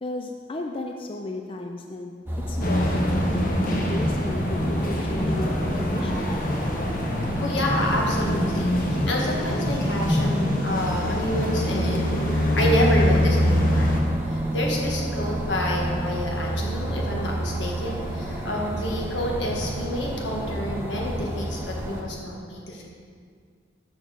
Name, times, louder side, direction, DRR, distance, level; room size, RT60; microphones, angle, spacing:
voice 1, 0.0-2.2 2.5-6.3, left 2 dB, 30° left, 3 dB, 0.4 m, -35 dB
sound 1, 2.3-22.0, equal, 10° right, 0.9 m, -28 dB
sound 2, 2.6-14.0, equal, 50° left, 1.1 m, -26 dB
voice 2, 7.4-22.8, equal, 80° left, -1 dB, 1.6 m, -29 dB
6.8 x 6.1 x 6.5 m, 2.1 s
head